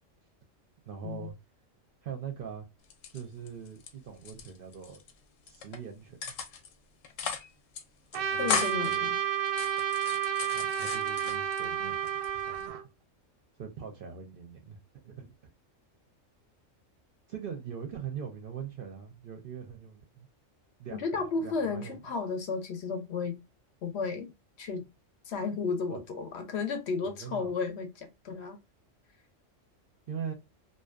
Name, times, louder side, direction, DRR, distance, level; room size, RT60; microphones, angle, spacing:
voice 1, 0.9-1.3 2.0-2.7 3.1-5.0 5.4-6.3 8.1-9.1 10.4-12.8 13.6-14.8 15.0-15.5 17.3-20.3 20.8-22.0 25.9-26.0 27.0-27.5 30.1-30.3, right 7 dB, 60° right, 0.6 m, -42 dB
sound 1, 2.8-3.9 4.2-5.1 5.5-5.8 6.2-6.7 7.0-7.5 7.7-7.8 8.1-9.0 9.5-11.6 12.1-12.7, left 7 dB, 90° left, 1.0 m, -36 dB
Trumpet, 8.1-12.8, right 9 dB, 90° right, 1.0 m, -31 dB
voice 2, 8.4-9.2 21.0-23.4 23.8-24.3 24.6-24.9 25.3-28.6, left 4 dB, 65° left, 0.8 m, -33 dB
2.6 x 2.2 x 2.2 m
omnidirectional pair, 1.3 m